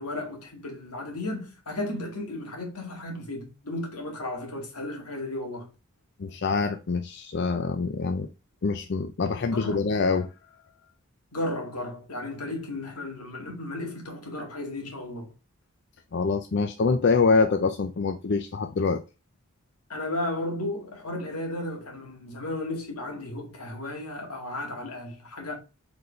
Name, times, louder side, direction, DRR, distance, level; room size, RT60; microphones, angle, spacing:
voice 1, 0.0-5.7 9.5-9.9 11.3-15.3 19.9-25.6, left 1 dB, 90° left, 2.1 m, -34 dB
voice 2, 6.2-8.3 8.6-10.3 16.1-19.0, left 4 dB, 50° left, 0.5 m, -25 dB
4.8 x 4.0 x 5.1 m
head